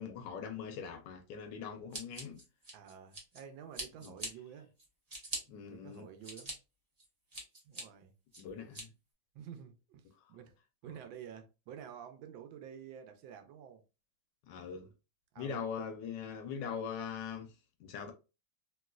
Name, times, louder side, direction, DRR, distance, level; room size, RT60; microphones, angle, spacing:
voice 1, 0.0-2.4 4.0-4.2 5.5-6.1 8.4-8.9 14.5-14.9 15.4-17.5 17.8-18.1, left 7 dB, 75° left, 1.2 m, -41 dB
Scissors, 1.9-3.4 3.7-4.3 4.8-5.4 5.9-6.5 7.0-7.8 8.3-8.8, right 1 dB, 30° right, 0.7 m, -42 dB
voice 2, 2.7-4.7 5.6-6.5 7.6-8.1 9.3-10.0 10.3-10.5 10.8-13.8 15.3-15.6, right 8 dB, 75° right, 1.3 m, -50 dB
3.1 x 3.0 x 2.3 m
omnidirectional pair, 2.2 m